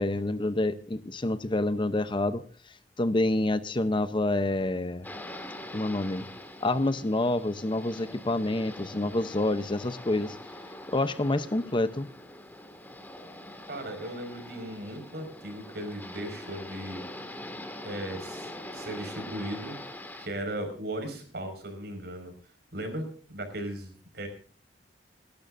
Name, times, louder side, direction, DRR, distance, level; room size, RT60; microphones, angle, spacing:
voice 1, 0.0-2.4 3.0-5.1 5.7-6.3 6.6-10.4 10.9-12.1, left 2 dB, 30° left, 12 dB, 0.7 m, -27 dB
sound 1, 5.0-20.3, left 1 dB, 10° left, 1.9 m, -43 dB
voice 2, 13.7-17.0 17.8-19.8 20.2-22.3 22.7-24.3, right 1 dB, 65° right, 7 dB, 5.1 m, -37 dB
29.5 x 12.0 x 2.6 m, 0.42 s
head